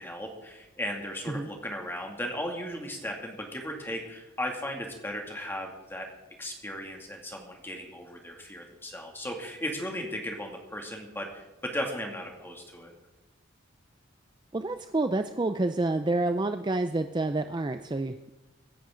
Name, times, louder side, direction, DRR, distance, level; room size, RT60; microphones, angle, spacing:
voice 1, 0.0-6.1 6.4-12.9, equal, 10° left, 1 dB, 2.4 m, -36 dB
voice 2, 14.5-18.3, right 2 dB, 20° right, 8 dB, 0.4 m, -28 dB
24.5 x 10.5 x 3.8 m, 1.1 s
head